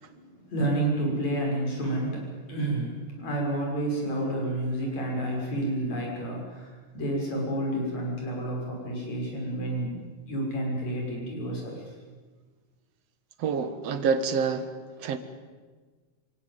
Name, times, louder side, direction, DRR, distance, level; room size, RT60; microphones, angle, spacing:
voice 1, 0.1-11.8, right 1 dB, 65° left, -1 dB, 7.9 m, -30 dB
voice 2, 13.4-14.7 15.0-15.2, right 5 dB, 60° right, 10 dB, 2.5 m, -27 dB
26.5 x 17.0 x 9.3 m, 1.4 s
omnidirectional pair, 3.4 m